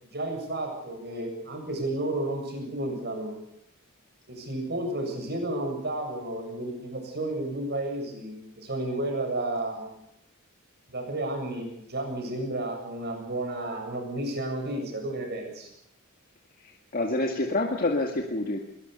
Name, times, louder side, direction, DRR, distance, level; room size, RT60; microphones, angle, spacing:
voice 1, 0.0-3.3 4.3-9.8 10.9-15.7, right 1 dB, 50° right, 3 dB, 7.6 m, -32 dB
voice 2, 16.6-18.6, left 2 dB, 40° left, 2 dB, 2.0 m, -27 dB
22.0 x 20.0 x 6.9 m, 0.79 s
head